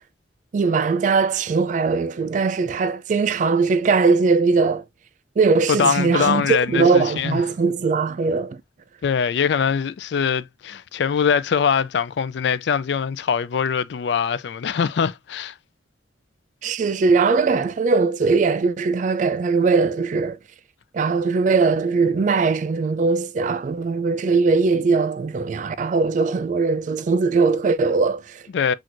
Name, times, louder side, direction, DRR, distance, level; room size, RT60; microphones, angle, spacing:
voice 1, 0.5-4.8 5.4-8.6 16.6-20.4 20.9-28.4, right 4 dB, 45° right, 0.3 m, -20 dB
voice 2, 5.7-7.4 9.0-15.5 28.5-28.7, left 6 dB, 70° left, 0.3 m, -22 dB
5.9 x 2.5 x 2.5 m
head